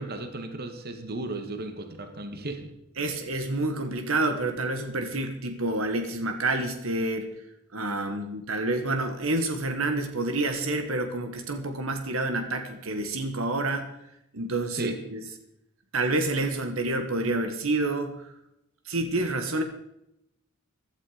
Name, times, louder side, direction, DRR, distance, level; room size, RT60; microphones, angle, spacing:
voice 1, 0.0-2.7 14.7-15.0, right 2 dB, 45° right, 7 dB, 1.7 m, -35 dB
voice 2, 3.0-7.3 7.7-13.9 14.3-15.2 15.9-18.3 18.8-19.6, right 2 dB, 75° right, 6 dB, 1.6 m, -28 dB
16.0 x 12.0 x 5.0 m, 0.81 s
head